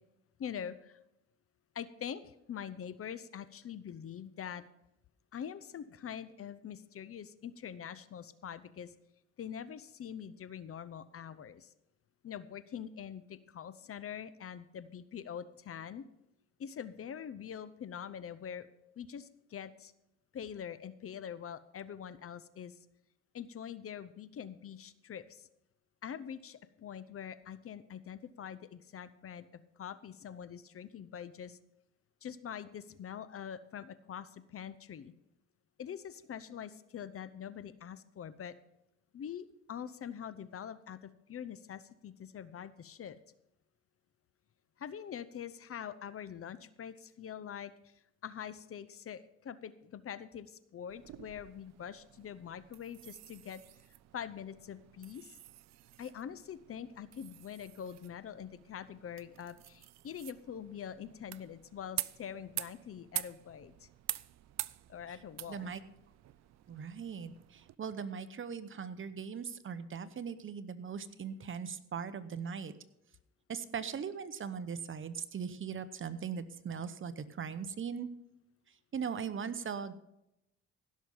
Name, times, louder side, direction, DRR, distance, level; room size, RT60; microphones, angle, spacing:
voice 1, 0.4-1.0 1.7-4.6 5.3-8.9 9.4-11.7 12.2-16.1 16.6-18.7 19.0-19.9 20.3-22.8 23.3-25.5 26.0-29.5 29.8-31.6 32.2-35.1 35.8-38.5 39.1-43.2 44.8-47.7 48.2-53.6 54.1-55.4 56.0-63.9 64.9-65.7, left 8 dB, 50° left, 15 dB, 0.7 m, -44 dB
sound 1, 50.9-67.8, right 15 dB, 60° right, 0.4 m, -46 dB
voice 2, 65.5-65.8 66.7-72.7 73.5-78.1 78.9-80.0, right 6 dB, 45° right, 13 dB, 0.9 m, -39 dB
16.0 x 6.4 x 5.5 m, 0.84 s
cardioid pair, 90°, 30 cm